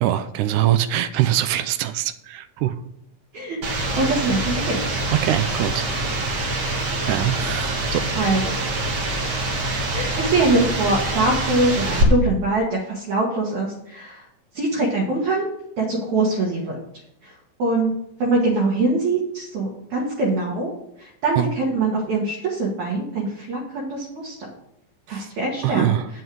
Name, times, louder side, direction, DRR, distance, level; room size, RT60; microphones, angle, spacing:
voice 1, 0.0-2.8 5.2-5.9 7.1-8.0 21.4-21.5 25.1-25.3 25.6-26.1, right 12 dB, 80° right, 12 dB, 1.9 m, -23 dB
voice 2, 3.3-5.1 8.2-8.6 9.6-14.2 14.5-15.5 15.8-16.8 17.2-17.3 17.6-17.9 18.2-20.7 21.0-24.5 25.1-25.9, right 2 dB, 65° right, -3 dB, 2.7 m, -23 dB
sound 1, 3.6-12.0, right 2 dB, 50° right, 1.9 m, -25 dB
9.1 x 5.5 x 6.1 m, 0.78 s
omnidirectional pair, 3.8 m